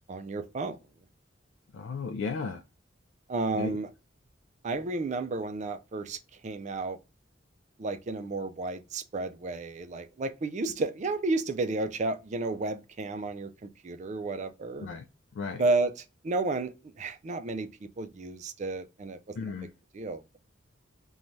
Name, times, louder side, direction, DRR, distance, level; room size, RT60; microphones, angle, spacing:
voice 1, 0.1-0.8 3.3-3.9 4.6-6.2 6.4-7.0 7.8-14.9 15.6-15.9 16.2-17.7 18.0-19.5 19.9-20.4, right 3 dB, 35° right, 0.4 m, -32 dB
voice 2, 1.7-2.6 3.5-3.8 14.8-15.0 15.3-15.6 19.4-19.7, left 4 dB, 65° left, 0.3 m, -34 dB
3.1 x 2.2 x 2.5 m
head